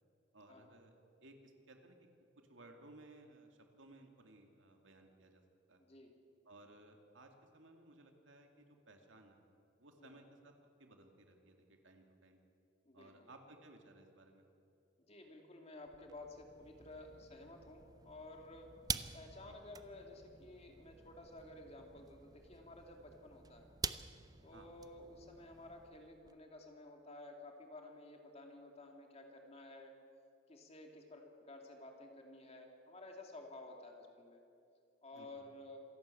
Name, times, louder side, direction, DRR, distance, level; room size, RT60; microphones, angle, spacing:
voice 1, 0.3-0.9 1.2-2.1 2.4-5.4 5.7-5.8 6.4-9.4 9.8-10.5 10.8-12.4 12.9-14.4 19.4-19.6 24.5-24.7 35.1-35.4, right 2 dB, 70° right, 4 dB, 2.4 m, -60 dB
voice 2, 5.8-6.1 10.0-10.2 12.8-13.3 15.1-18.7 19.1-23.7 24.4-29.9 30.5-34.4 35.0-35.8, left 2 dB, 30° left, 2 dB, 2.5 m, -53 dB
sound 1, 15.9-26.4, right 5 dB, 20° right, 0.6 m, -48 dB
26.5 x 12.0 x 8.5 m, 2.5 s
head